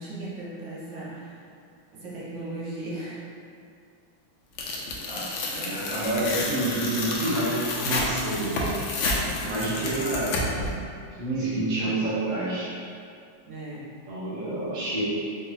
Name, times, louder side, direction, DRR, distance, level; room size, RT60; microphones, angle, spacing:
voice 1, 0.0-1.4 1.9-3.2 13.5-14.0, right 2 dB, 70° right, -7 dB, 1.5 m, -37 dB
Tearing, 4.6-10.7, left 2 dB, 80° left, 1.4 m, -30 dB
voice 2, 5.1-8.6 9.3-10.7 11.2-12.7 14.1-15.0, right 1 dB, 35° right, -10 dB, 0.7 m, -28 dB
5.2 x 2.4 x 2.8 m, 2.3 s
omnidirectional pair, 2.2 m